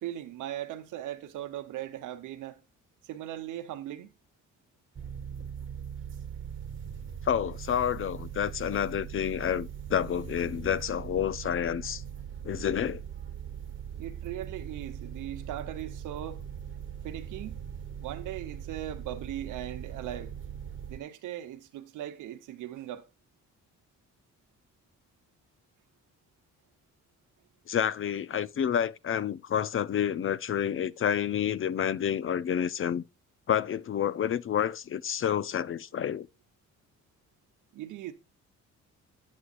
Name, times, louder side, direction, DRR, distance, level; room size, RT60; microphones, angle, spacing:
voice 1, 0.0-2.6 3.0-4.1 14.0-16.4 17.0-17.6 18.0-20.3 20.9-23.1 37.7-38.1, right 12 dB, 85° right, 1.1 m, -39 dB
sound 1, 4.9-21.0, right 8 dB, 40° right, 1.2 m, -40 dB
voice 2, 7.2-12.0 12.4-13.0 27.7-33.0 33.5-36.3, left 9 dB, 45° left, 0.5 m, -29 dB
9.6 x 8.3 x 2.5 m
cardioid pair, 90°, 30 cm